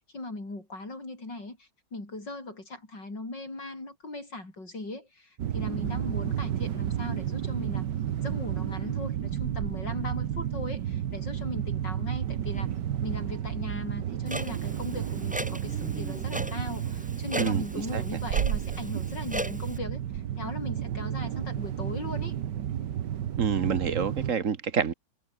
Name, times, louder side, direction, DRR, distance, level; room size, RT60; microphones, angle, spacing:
voice 1, 0.1-7.8 8.2-12.7 13.0-22.4, left 2 dB, 65° left, 8.0 m, -39 dB
sound 1, 5.4-24.3, right 10 dB, 65° right, 1.6 m, -32 dB
Clock, 14.3-19.8, equal, 5° right, 2.1 m, -38 dB
voice 2, 17.4-18.0 23.4-24.9, right 6 dB, 45° right, 1.5 m, -28 dB
omnidirectional pair, 2.1 m